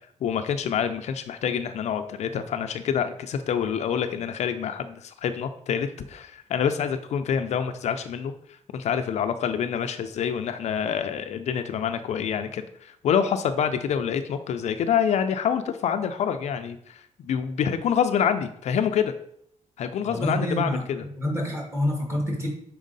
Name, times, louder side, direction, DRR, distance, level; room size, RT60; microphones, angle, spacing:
voice 1, 0.2-8.3 8.7-19.1 19.8-21.0, left 8 dB, 65° left, 8 dB, 0.4 m, -27 dB
voice 2, 20.1-20.8 21.2-22.5, left 1 dB, 20° right, -1 dB, 1.8 m, -27 dB
6.3 x 4.4 x 3.9 m, 0.69 s
wide cardioid pair, 165°, 12 cm